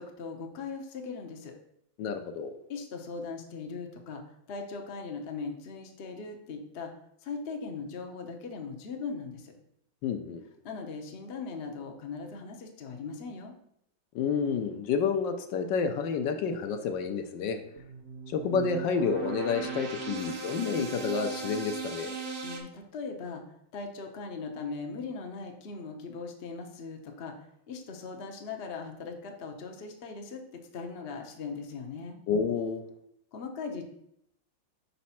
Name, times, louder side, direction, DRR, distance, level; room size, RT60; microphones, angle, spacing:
voice 1, 0.0-1.6 2.7-6.9 7.2-9.5 10.6-13.5 22.4-30.4 30.7-32.2 33.3-33.8, left 4 dB, 50° left, 3 dB, 0.7 m, -39 dB
voice 2, 2.0-2.6 10.0-10.4 14.1-17.6 18.3-22.2 32.3-32.8, left 5 dB, 75° left, 6 dB, 1.2 m, -29 dB
sound 1, 17.8-22.6, right 4 dB, 40° right, 0.8 m, -38 dB
5.1 x 4.2 x 5.6 m, 0.74 s
omnidirectional pair, 2.1 m